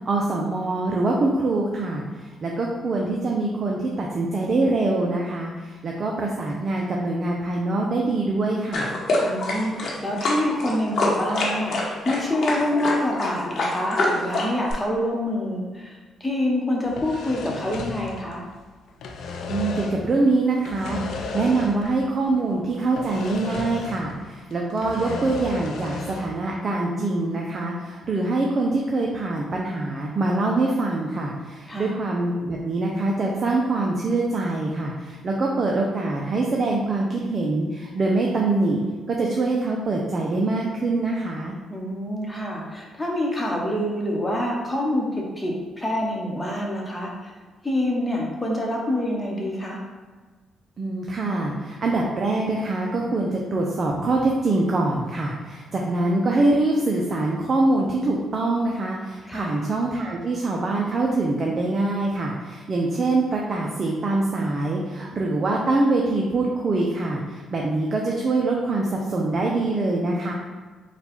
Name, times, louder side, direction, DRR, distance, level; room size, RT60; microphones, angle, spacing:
voice 1, 0.1-8.9 19.5-38.8 39.1-41.5 50.8-70.3, right 2 dB, 45° right, -1 dB, 0.5 m, -24 dB
sound 1, 8.7-14.7, left 2 dB, 60° left, 1.0 m, -25 dB
voice 2, 9.2-18.4 31.7-31.9 41.7-47.3 47.6-49.8 59.2-59.6, left 1 dB, 15° left, -2 dB, 1.0 m, -26 dB
sound 2, 16.8-18.6 18.9-20.1 20.6-22.0 22.3-22.4 23.0-24.2 24.5-26.4, left 4 dB, 75° left, 0.5 m, -34 dB
4.1 x 2.3 x 4.2 m, 1.4 s
cardioid pair, 90°, 0 cm